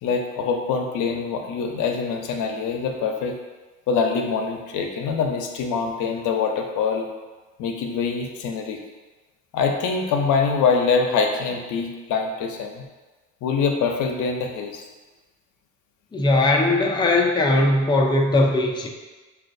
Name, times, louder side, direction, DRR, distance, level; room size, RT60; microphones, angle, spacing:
voice 1, 0.0-3.4 3.9-7.1 7.6-8.8 9.5-12.8 13.4-14.8, left 5 dB, 80° left, 2 dB, 0.6 m, -24 dB
voice 2, 16.1-18.9, left 2 dB, 15° left, 1 dB, 0.4 m, -19 dB
5.4 x 2.3 x 2.5 m, 1.2 s
cardioid pair, 90°, 30 cm